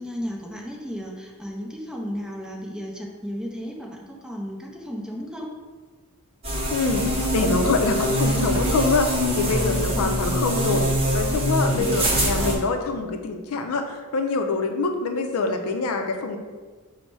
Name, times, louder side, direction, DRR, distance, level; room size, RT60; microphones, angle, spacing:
voice 1, 0.0-5.5 10.0-10.2 11.7-12.1, equal, 5° right, -1 dB, 0.5 m, -34 dB
sound 1, 6.4-12.5, equal, 25° right, 1.0 m, -23 dB
voice 2, 6.7-16.4, left 3 dB, 75° left, 5 dB, 0.5 m, -25 dB
5.4 x 2.1 x 4.5 m, 1.4 s
head